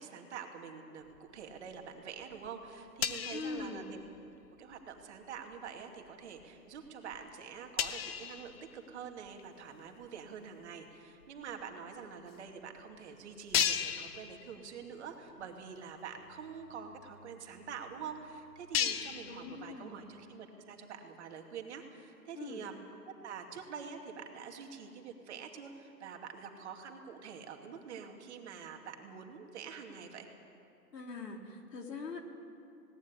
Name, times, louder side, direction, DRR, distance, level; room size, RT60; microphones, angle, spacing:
voice 1, 0.0-4.0 4.6-22.8 23.2-30.3, right 6 dB, 40° right, 3 dB, 2.6 m, -46 dB
sound 1, 1.1-1.9 2.2-4.5 4.7-5.0 5.5-5.8 6.4-6.5 6.8-6.9 7.1-7.2 7.8-9.4 10.0-10.1 11.2-11.3 11.5-11.6 12.3-12.4 12.8-12.9 13.5-15.0 15.3-15.4 15.9-16.0 16.2-20.0, left 9 dB, 35° left, 1.1 m, -37 dB
voice 2, 3.3-4.0 19.2-20.1 22.3-22.7 30.9-32.2, left 4 dB, 75° left, 3 dB, 3.4 m, -42 dB
18.5 x 18.0 x 10.0 m, 2.7 s
hypercardioid pair, 140°, 49 cm